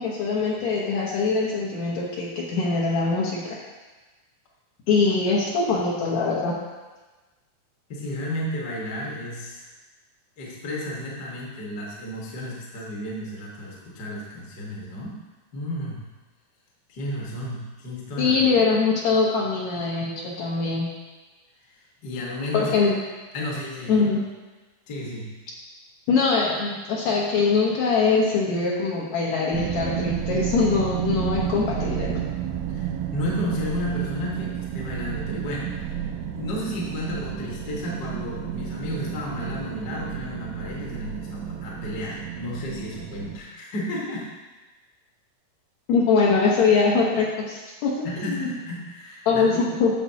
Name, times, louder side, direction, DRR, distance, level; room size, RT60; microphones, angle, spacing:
voice 1, 0.0-3.6 4.9-6.5 18.2-20.9 22.5-23.0 23.9-24.2 26.1-32.2 45.9-48.5 49.3-49.9, left 4 dB, 65° left, -4 dB, 2.2 m, -22 dB
voice 2, 7.9-9.7 10.4-15.1 15.5-16.0 16.9-18.4 21.7-22.7 23.3-24.1 24.9-25.3 32.7-35.9 36.3-44.2 48.0-49.6, left 1 dB, 45° left, -4 dB, 1.4 m, -33 dB
sound 1, 29.5-43.4, right 9 dB, 90° right, 2.3 m, -31 dB
10.5 x 6.9 x 2.8 m, 1.2 s
omnidirectional pair, 3.9 m